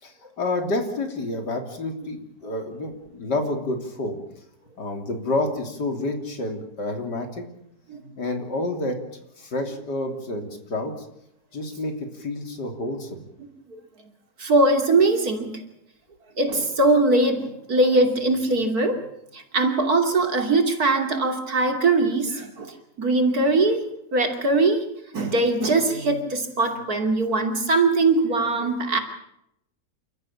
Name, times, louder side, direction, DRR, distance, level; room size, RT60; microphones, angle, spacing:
voice 1, 0.0-4.2 4.8-7.5 8.2-9.0 9.4-11.1 11.5-13.2, left 2 dB, 80° left, 5 dB, 3.8 m, -29 dB
voice 2, 14.4-15.6 16.4-19.0 19.3-23.8 24.1-24.8 25.1-29.0, right 2 dB, 60° right, 5 dB, 3.3 m, -21 dB
29.0 x 14.0 x 8.7 m, 0.78 s
omnidirectional pair, 1.8 m